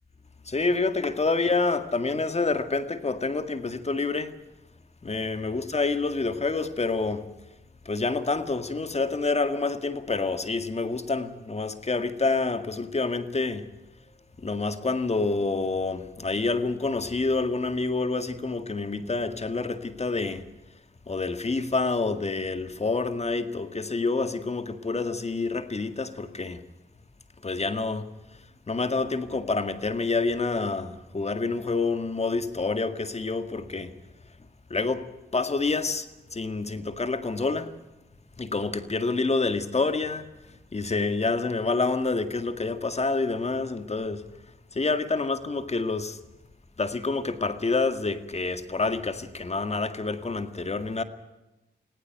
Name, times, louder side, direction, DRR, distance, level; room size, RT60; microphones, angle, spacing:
voice 1, 0.5-4.3 5.0-7.3 7.9-13.7 14.4-20.5 21.1-26.7 27.4-28.1 28.7-33.9 34.7-37.7 38.4-40.3 40.7-44.2 44.7-46.2 46.8-51.0, left 3 dB, 40° left, 2.0 m, -27 dB
19.5 x 17.0 x 9.1 m
cardioid pair, 70°, 18 cm